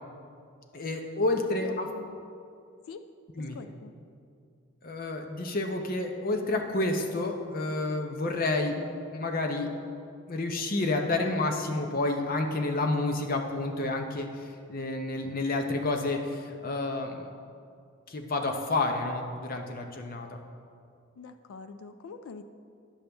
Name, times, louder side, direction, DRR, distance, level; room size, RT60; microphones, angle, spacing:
voice 1, 0.7-1.9 3.4-3.6 4.8-8.8 9.1-9.7 10.3-17.3 18.1-20.4, left 2 dB, 40° left, 4 dB, 0.6 m, -29 dB
voice 2, 1.3-2.2 2.9-3.0 3.4-3.9 21.2-22.4, left 4 dB, 75° left, 9 dB, 0.4 m, -45 dB
9.9 x 6.8 x 3.4 m, 2.4 s
head